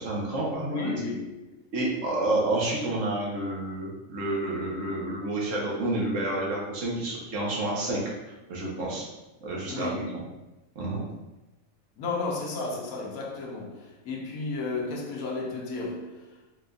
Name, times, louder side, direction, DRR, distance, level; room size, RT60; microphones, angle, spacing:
voice 1, 0.0-0.9 1.7-8.0 8.5-9.0 9.4-10.2 10.7-11.0, right 2 dB, 65° right, 1.4 m, -29 dB
voice 2, 0.7-1.3 9.7-10.1 12.0-16.3, left 3 dB, 85° left, 1.3 m, -33 dB
4.8 x 3.8 x 2.4 m
omnidirectional pair, 1.5 m